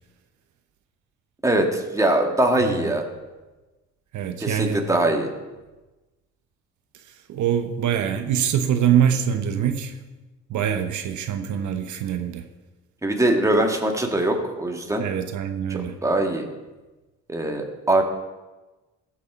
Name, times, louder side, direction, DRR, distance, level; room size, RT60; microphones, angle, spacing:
voice 1, 1.4-3.0 4.4-5.3 13.0-15.1 15.7-16.5 17.3-18.0, right 1 dB, 10° right, 2 dB, 1.7 m, -22 dB
voice 2, 4.1-4.8 7.3-10.0 10.5-12.4 15.0-16.0, right 9 dB, 75° right, 7 dB, 0.9 m, -24 dB
16.0 x 6.4 x 4.6 m, 1.1 s
cardioid pair, 90°, 30 cm